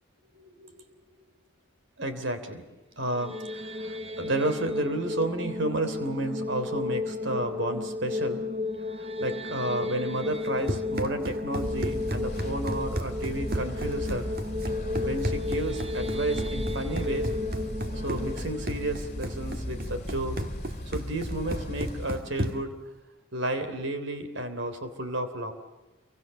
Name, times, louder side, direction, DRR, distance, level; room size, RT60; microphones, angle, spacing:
voice 1, 0.4-0.8 2.0-2.6 3.0-8.4 9.0-14.3 15.0-17.3 18.0-20.4 20.9-22.7 23.3-25.5, right 1 dB, 65° right, 8 dB, 3.4 m, -32 dB
sound 1, 3.0-20.1, left 2 dB, 30° right, 1.1 m, -34 dB
Run, 10.3-22.8, right 1 dB, 45° right, 1.8 m, -35 dB
sound 2, 11.6-22.1, equal, 35° left, 2.5 m, -36 dB
28.0 x 24.0 x 6.8 m, 1.1 s
head